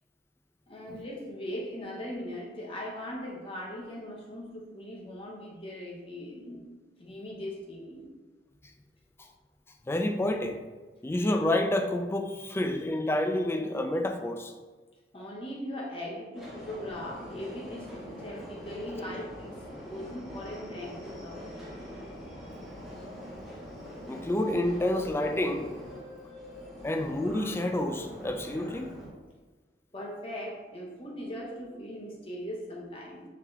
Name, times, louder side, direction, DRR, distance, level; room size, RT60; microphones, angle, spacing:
voice 1, 0.7-6.7 7.0-8.1 15.1-19.5 19.8-21.7 22.3-22.4 26.3-26.7 29.9-33.3, equal, 30° left, -2 dB, 0.9 m, -40 dB
voice 2, 9.9-10.6 11.0-14.5 24.1-25.7 26.8-28.9, left 1 dB, 15° left, 5 dB, 0.3 m, -29 dB
Subway metro underground, 16.3-29.1, equal, ahead, 1.2 m, -43 dB
4.7 x 2.9 x 3.6 m, 1.3 s
head